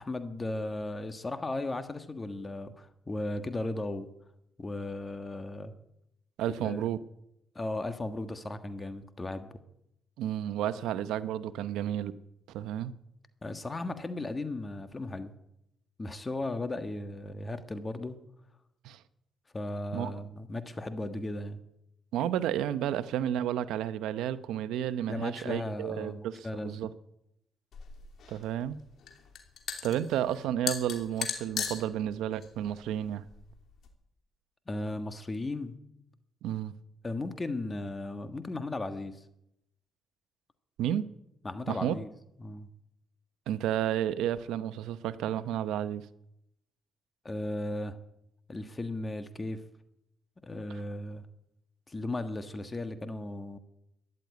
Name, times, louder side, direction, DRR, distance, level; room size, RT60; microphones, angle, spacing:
voice 1, 0.0-4.1 4.6-5.7 6.6-6.8 7.5-9.5 13.4-15.3 16.0-18.2 19.5-21.6 25.1-26.8 34.7-35.8 37.0-39.2 41.4-42.1 42.4-42.7 47.2-48.0 48.5-49.6 50.4-51.3 51.9-53.6, left 2 dB, 25° left, 9 dB, 1.5 m, -36 dB
voice 2, 6.4-7.0 10.2-12.1 12.5-12.9 18.8-19.0 19.9-20.1 22.1-26.9 28.3-28.8 29.8-33.2 36.4-36.7 40.8-41.0 41.7-42.0 43.5-46.0, right 11 dB, 90° right, 14 dB, 0.8 m, -31 dB
sound 1, 27.7-33.9, left 7 dB, 65° left, 2.9 m, -39 dB
13.5 x 11.0 x 9.4 m, 0.81 s
cardioid pair, 90°, 0 cm